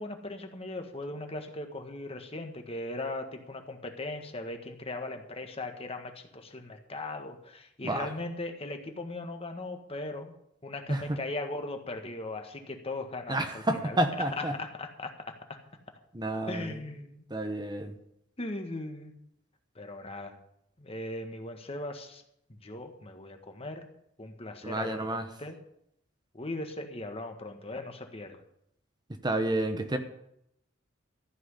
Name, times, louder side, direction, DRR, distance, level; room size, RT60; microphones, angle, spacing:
voice 1, 0.0-10.3 10.6-15.6 16.5-17.2 18.4-19.1 19.7-20.4 20.8-22.2 22.5-23.9 24.2-25.6 26.3-28.4, left 2 dB, 30° left, 5 dB, 1.5 m, -39 dB
voice 2, 10.9-11.2 13.3-14.6 16.1-16.8 17.3-17.9 24.6-25.3 29.2-30.0, right 1 dB, 25° right, 7 dB, 1.0 m, -30 dB
14.0 x 6.2 x 9.9 m, 0.77 s
head